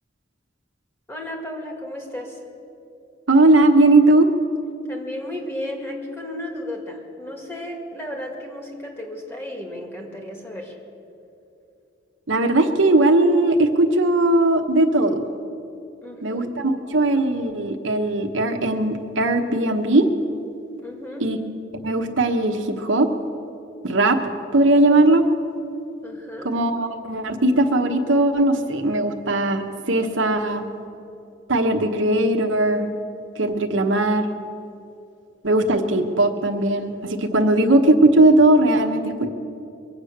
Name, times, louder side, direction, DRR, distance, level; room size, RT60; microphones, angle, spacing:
voice 1, 1.1-2.4 4.8-10.8 16.0-16.5 20.8-21.3 26.0-26.5, left 1 dB, 15° left, 1 dB, 2.0 m, -34 dB
voice 2, 3.3-4.3 12.3-15.2 16.2-20.1 21.2-21.4 21.8-23.1 23.8-24.2 24.5-25.3 26.4-30.6 31.5-32.9 33.4-34.3 35.4-39.3, right 2 dB, 90° right, 4 dB, 1.1 m, -18 dB
23.0 x 8.2 x 6.6 m, 2.7 s
head